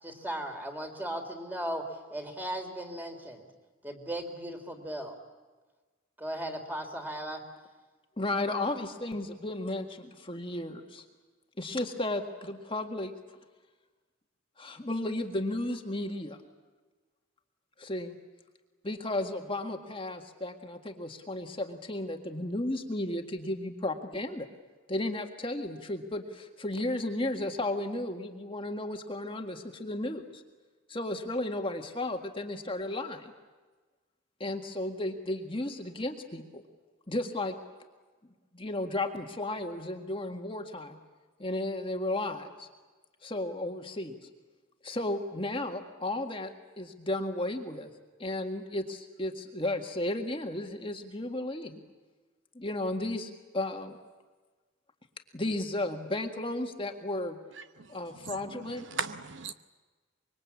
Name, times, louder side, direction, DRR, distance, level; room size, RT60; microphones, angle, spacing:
voice 1, 0.0-1.8 2.1-3.5 3.8-5.2 6.2-7.4, right 1 dB, 10° right, 3.4 m, -37 dB
voice 2, 8.2-11.0 11.6-13.1 14.6-16.4 17.8-18.2 18.8-24.5 24.9-30.4 30.9-33.3 34.4-36.6 37.1-37.6 38.5-41.0 41.4-42.7 43.2-44.2 44.8-46.5 46.8-47.9 48.2-51.8 52.6-54.0 55.3-57.4 57.9-58.9, left 1 dB, 25° left, 1.8 m, -34 dB
voice 3, 57.8-59.5, right 5 dB, 60° right, 0.9 m, -39 dB
25.5 x 23.5 x 8.6 m
head